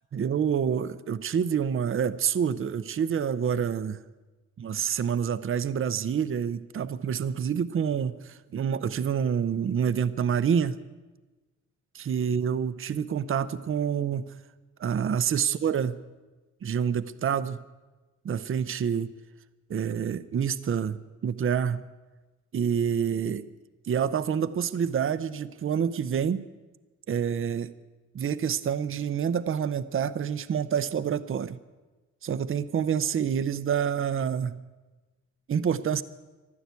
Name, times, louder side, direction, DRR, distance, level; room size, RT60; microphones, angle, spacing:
voice 1, 0.1-4.0 4.6-10.8 11.9-14.3 14.8-15.9 16.6-17.6 18.2-19.1 19.7-21.8 22.5-23.4 23.9-26.4 27.1-27.7 28.1-31.6 32.2-34.6 35.5-36.0, right 7 dB, 45° right, 14 dB, 0.6 m, -27 dB
14.5 x 12.0 x 8.2 m, 1.2 s
wide cardioid pair, 145°, 31 cm